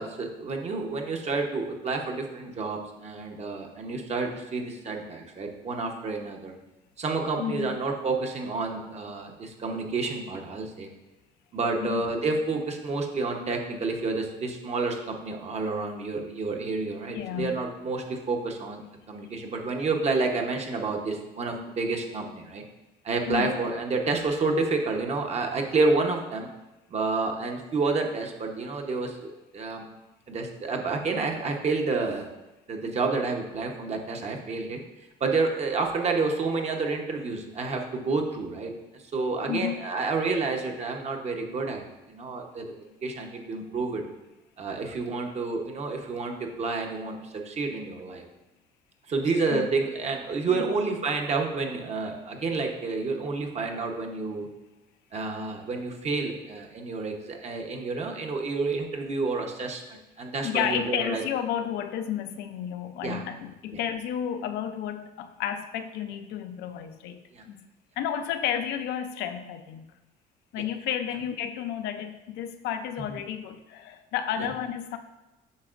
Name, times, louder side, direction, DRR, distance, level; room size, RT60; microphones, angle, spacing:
voice 1, 0.0-6.5 7.0-10.9 11.5-22.6 23.0-26.5 26.9-29.8 30.3-32.3 32.7-34.8 35.2-42.6 43.0-44.0 44.6-48.2 49.1-54.5 55.1-61.2 63.0-63.2 63.7-63.8 67.3-67.4 73.0-73.2 74.4-74.5, right 3 dB, 40° right, 2 dB, 1.0 m, -29 dB
voice 2, 7.4-7.8 11.8-12.1 17.1-17.6 23.3-23.6 39.4-39.8 49.5-49.7 50.5-50.7 60.4-67.2 67.4-67.6 68.0-69.9 70.5-75.0, left 9 dB, 80° left, 9 dB, 0.6 m, -32 dB
8.3 x 5.8 x 2.5 m, 1.0 s
cardioid pair, 110°, 17 cm